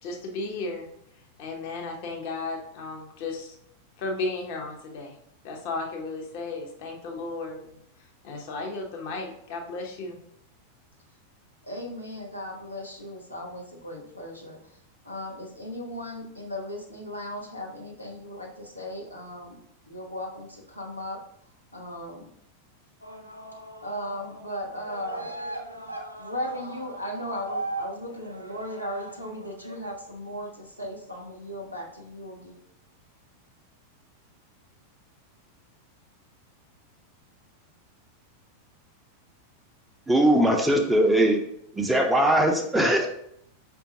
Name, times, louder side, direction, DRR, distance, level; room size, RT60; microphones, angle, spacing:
voice 1, 0.0-0.9 1.4-3.6 4.0-5.2 5.4-7.8 8.2-10.2, left 3 dB, 45° left, 2 dB, 0.8 m, -34 dB
voice 2, 11.6-14.6 15.0-19.6 19.9-21.2 21.7-22.3 23.8-25.3 26.2-32.6, left 1 dB, 85° left, -1 dB, 0.7 m, -37 dB
sound 1, 23.0-24.5 24.7-29.8, right 2 dB, 90° right, 0.4 m, -38 dB
voice 3, 40.1-41.4 41.8-43.1, right 1 dB, 5° right, 3 dB, 0.4 m, -20 dB
5.0 x 2.3 x 2.7 m, 0.72 s
figure-of-eight pair, 90°, 0 cm